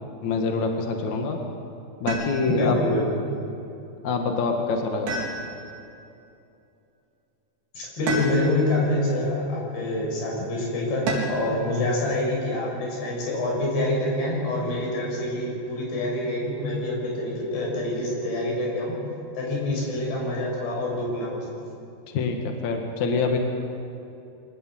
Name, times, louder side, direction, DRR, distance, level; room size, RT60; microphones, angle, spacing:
voice 1, 0.2-1.4 2.0-2.8 4.0-5.2 22.1-23.4, left 4 dB, 55° left, 3 dB, 2.5 m, -25 dB
sound 1, 2.1-2.7 5.1-5.9 8.1-8.8 11.1-11.6 13.3-13.9, right 2 dB, 65° right, 6.2 m, -31 dB
voice 2, 2.5-3.2 7.7-19.0 19.4-21.5, left 1 dB, 75° left, -2 dB, 8.3 m, -26 dB
24.5 x 19.0 x 7.7 m, 2.7 s
omnidirectional pair, 4.9 m